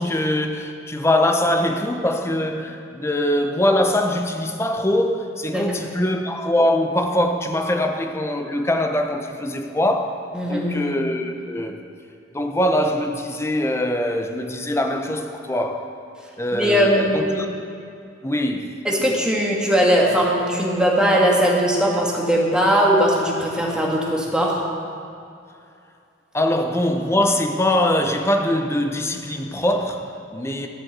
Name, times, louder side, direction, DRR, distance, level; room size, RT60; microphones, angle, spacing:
voice 1, 0.0-10.2 10.5-11.8 12.3-15.9 16.4-17.5 18.2-18.8 26.3-30.7, left 1 dB, 15° left, 4 dB, 0.8 m, -22 dB
voice 2, 10.3-10.8 16.5-17.4 18.9-24.6, equal, 5° right, -3 dB, 1.8 m, -19 dB
13.0 x 7.8 x 7.4 m, 2.5 s
head